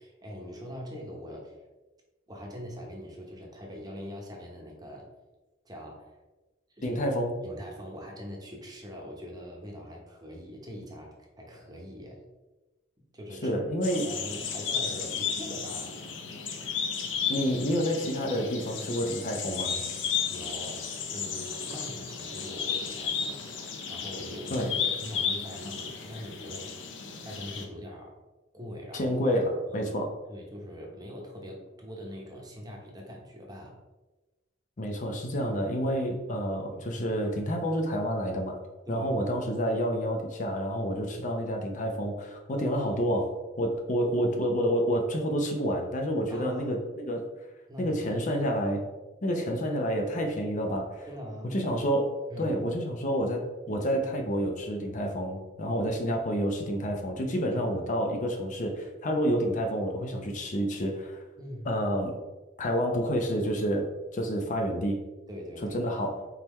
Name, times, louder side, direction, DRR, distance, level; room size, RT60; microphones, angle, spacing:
voice 1, 0.0-1.6 2.3-5.1 5.6-6.2 6.7-7.1 7.4-12.2 13.1-13.6 14.0-16.1 20.3-23.5 23.9-26.7 27.2-28.2 28.5-29.1 29.7-33.8 38.9-39.1 46.3-46.8 47.7-48.0 51.1-51.6 52.3-52.6 61.4-61.7 65.3-65.8 66.1-66.2, equal, 20° right, 0 dB, 0.9 m, -42 dB
voice 2, 6.8-7.4 13.4-14.1 17.3-19.8 24.5-24.7 28.9-30.2 34.8-38.6 38.9-47.3 47.8-48.9 49.2-51.1 51.4-61.2 61.7-62.2 62.6-65.0 65.6-66.2, equal, 45° left, 2 dB, 0.6 m, -29 dB
sound 1, 13.8-27.6, left 7 dB, 80° left, 0.6 m, -33 dB
4.3 x 3.7 x 3.0 m, 1.1 s
head